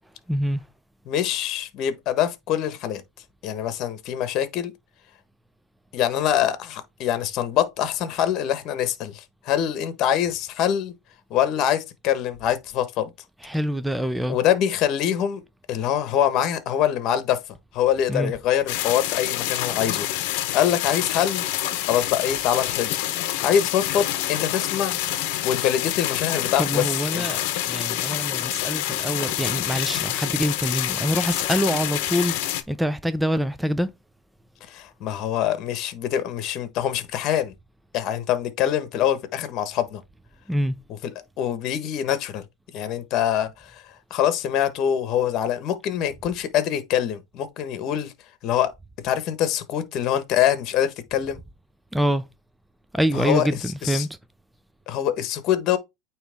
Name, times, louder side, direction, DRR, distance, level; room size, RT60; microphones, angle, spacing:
voice 1, 0.3-0.6 13.4-14.4 18.1-18.3 26.6-33.9 40.5-40.8 51.9-52.2 52.9-54.1, equal, 5° right, 0.4 m, -25 dB
voice 2, 1.1-3.0 3.4-4.7 5.9-10.9 11.3-13.1 14.3-15.4 15.7-17.4 17.7-20.1 20.5-21.4 21.9-23.0 23.4-25.0 25.4-27.3 34.7-37.5 37.9-40.0 41.4-42.4 42.7-43.8 44.1-48.1 48.4-48.7 49.0-51.4 53.1-53.5 53.8-54.1 54.9-55.8, left 10 dB, 45° left, 1.2 m, -24 dB
sound 1, 18.7-32.6, left 14 dB, 65° left, 0.8 m, -27 dB
8.8 x 3.0 x 3.5 m
supercardioid pair, 130°, 0 cm